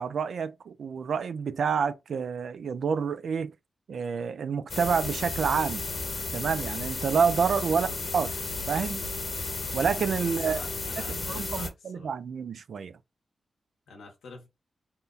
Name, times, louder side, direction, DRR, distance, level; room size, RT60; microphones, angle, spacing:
voice 1, 0.0-3.5 3.9-5.9 6.3-7.9 8.1-8.3 8.7-9.0 9.7-10.6 11.1-13.0, right 6 dB, 75° right, 0.4 m, -28 dB
sound 1, 4.7-11.7, left 3 dB, 60° left, 1.3 m, -33 dB
voice 2, 7.7-8.0 10.2-12.1 13.9-14.5, left 4 dB, 85° left, 1.1 m, -46 dB
3.6 x 2.2 x 4.0 m
supercardioid pair, 40°, 0 cm